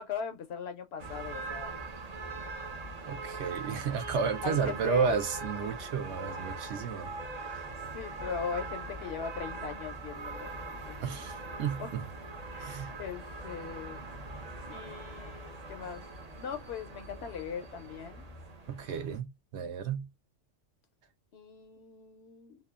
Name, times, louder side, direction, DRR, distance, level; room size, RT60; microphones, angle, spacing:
voice 1, 0.0-1.8 4.4-5.2 7.8-11.0 11.8-11.9 12.5-14.0 14.7-16.1 16.3-18.2 21.3-22.6, left 7 dB, 65° left, 0.7 m, -40 dB
sound 1, 1.0-19.2, right 3 dB, 45° right, 0.5 m, -41 dB
voice 2, 3.1-7.1 7.5-7.6 11.0-12.0 12.6-12.9 18.7-20.1, right 6 dB, 70° right, 0.9 m, -32 dB
2.8 x 2.2 x 2.2 m
omnidirectional pair, 1.3 m